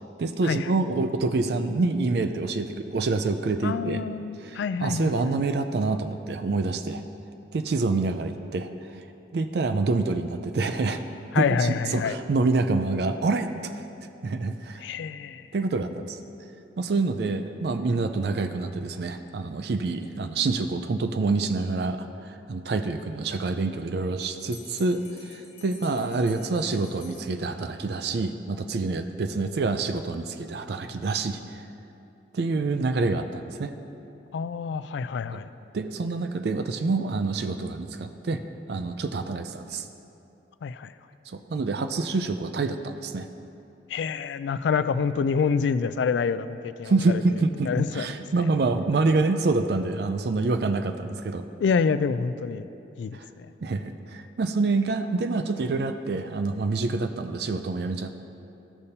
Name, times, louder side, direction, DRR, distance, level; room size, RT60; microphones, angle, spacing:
voice 1, 0.2-4.0 4.4-7.0 7.5-9.0 9.3-11.0 11.4-13.5 14.2-14.8 15.5-16.2 16.8-31.6 32.3-33.7 35.3-35.4 35.7-38.4 38.7-39.9 41.3-43.3 46.9-51.4 53.1-53.3 53.6-58.2, right 3 dB, 60° right, 8 dB, 0.4 m, -27 dB
voice 2, 3.6-5.5 11.3-12.2 14.8-15.5 34.3-35.5 40.6-40.9 43.9-47.2 47.7-48.4 51.6-52.7 53.0-53.5, left 5 dB, 70° left, 13 dB, 0.3 m, -27 dB
Bell, 24.2-27.9, left 4 dB, 30° left, 1.2 m, -50 dB
14.5 x 6.6 x 2.8 m, 2.8 s
head